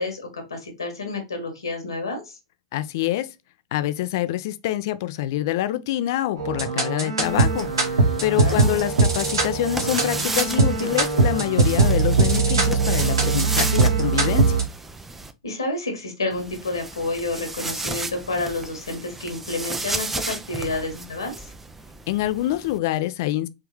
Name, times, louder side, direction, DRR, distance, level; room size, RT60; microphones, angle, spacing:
voice 1, 0.0-2.4 8.3-8.8 15.4-21.5, left 2 dB, 80° left, 1.6 m, -29 dB
voice 2, 2.7-3.3 3.7-14.6 22.1-23.5, left 14 dB, 55° left, 0.4 m, -26 dB
sound 1, 6.4-14.6, right 3 dB, 75° right, 1.3 m, -21 dB
sound 2, 7.2-15.3 16.3-22.8, right 2 dB, 10° right, 0.5 m, -34 dB
3.6 x 3.3 x 2.9 m
figure-of-eight pair, 95°, 2 cm